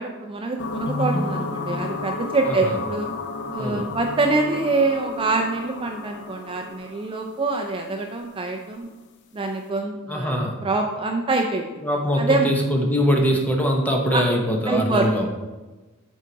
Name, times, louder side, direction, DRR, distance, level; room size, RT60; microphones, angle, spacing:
voice 1, 0.0-3.1 3.5-8.9 9.3-11.7 12.2-12.5 14.1-14.2 14.7-15.1, right 3 dB, 25° right, 3 dB, 0.4 m, -25 dB
sound 1, 0.6-8.2, left 3 dB, 55° left, 0.6 m, -31 dB
voice 2, 10.1-10.6 11.8-15.3, equal, 10° left, 1 dB, 0.9 m, -22 dB
7.2 x 4.6 x 4.0 m, 1.2 s
head